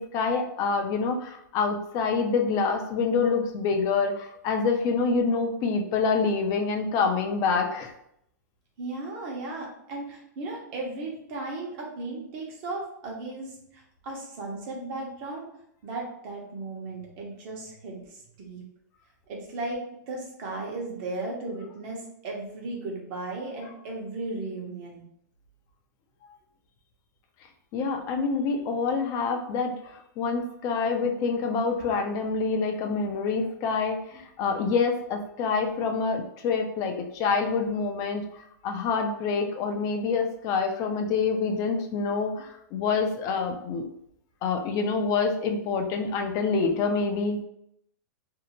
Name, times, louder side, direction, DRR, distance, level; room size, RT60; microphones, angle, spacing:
voice 1, 0.0-7.9 27.7-43.9 44.4-47.4, left 4 dB, 35° left, 4 dB, 0.5 m, -26 dB
voice 2, 8.8-15.4 15.8-18.6 19.3-25.0, right 2 dB, 45° right, -1 dB, 0.9 m, -36 dB
2.6 x 2.0 x 2.9 m, 0.73 s
hypercardioid pair, 130°, 10 cm